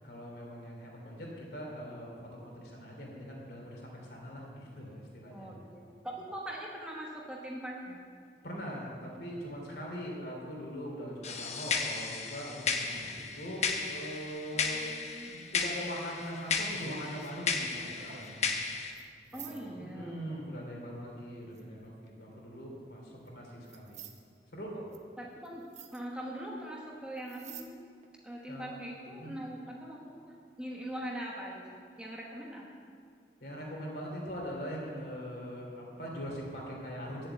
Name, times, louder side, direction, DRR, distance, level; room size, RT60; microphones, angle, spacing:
voice 1, 0.0-5.5 8.4-14.9 15.3-18.4 19.3-24.0 24.5-24.9 28.5-28.7 29.1-29.3 33.4-37.3, equal, 65° left, -2 dB, 3.2 m, -42 dB
voice 2, 5.3-8.0 14.5-15.3 19.3-20.7 25.2-25.7 25.9-27.8 28.2-32.7, right 1 dB, 5° right, -3 dB, 1.2 m, -42 dB
sound 1, 11.2-18.9, left 5 dB, 40° left, 0.9 m, -34 dB
sound 2, 16.2-17.3 17.7-18.7 19.0-19.1 19.3-19.6 21.6-22.1 23.3-23.4 23.7-24.2 24.9-25.0 25.4-25.5 25.7-26.0 27.2-27.7 28.0-28.1, right 5 dB, 40° right, 0.7 m, -48 dB
10.5 x 7.6 x 8.0 m, 2.2 s
head